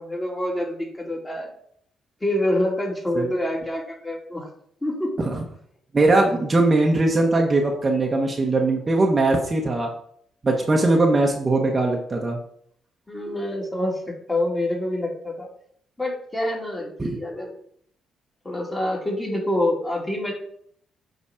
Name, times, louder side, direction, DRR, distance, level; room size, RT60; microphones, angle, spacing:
voice 1, 0.0-1.5 2.2-4.5 4.8-5.1 13.1-15.5 16.0-17.5 18.4-20.3, left 1 dB, 15° left, -2 dB, 2.6 m, -26 dB
voice 2, 5.9-9.9 10.4-12.4 17.0-17.1, right 2 dB, 30° right, 1 dB, 1.2 m, -20 dB
8.5 x 4.1 x 4.9 m, 0.66 s
cardioid pair, 90°, 0 cm